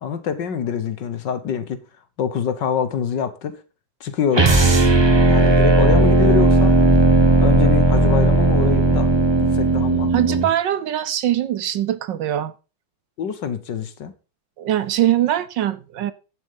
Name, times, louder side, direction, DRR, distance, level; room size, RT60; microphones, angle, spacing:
voice 1, 0.0-1.8 2.2-3.6 4.0-4.6 5.2-6.8 7.4-9.1 9.4-10.4 13.2-14.1, left 7 dB, 60° left, 1.8 m, -25 dB
sound 1, 4.3-10.5, right 2 dB, 25° right, 0.5 m, -15 dB
voice 2, 10.1-12.5 14.6-16.1, right 12 dB, 70° right, 1.3 m, -22 dB
11.0 x 7.2 x 5.5 m
omnidirectional pair, 2.2 m